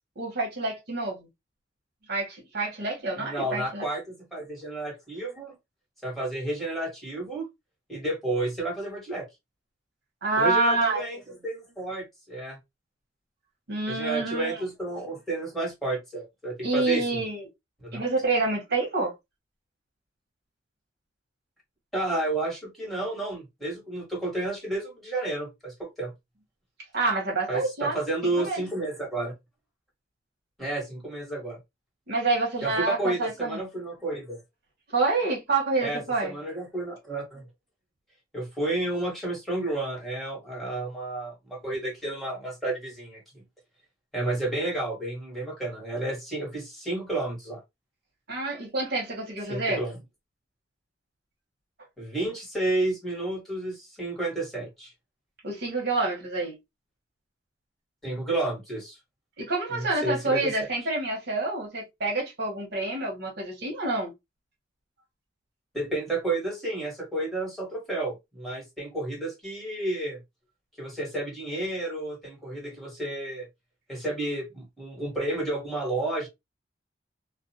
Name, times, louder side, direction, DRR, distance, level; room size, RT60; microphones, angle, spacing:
voice 1, 0.2-1.3 2.1-3.8 10.2-11.0 13.7-14.6 16.6-17.5 17.9-19.1 26.9-28.6 32.1-33.6 34.9-36.3 48.3-49.8 55.4-56.6 59.4-64.1, right 3 dB, 60° right, 1.0 m, -27 dB
voice 2, 3.1-5.6 6.0-7.5 7.9-9.3 10.3-12.6 13.9-17.2 17.8-18.0 21.9-26.1 27.5-29.3 30.6-31.6 32.6-34.4 35.8-37.5 38.3-43.4 44.1-47.6 49.5-50.0 52.0-54.9 58.0-59.0 59.7-60.7 65.7-70.2 70.8-73.5 73.9-76.3, right 2 dB, ahead, 1.3 m, -31 dB
2.4 x 2.2 x 2.6 m
head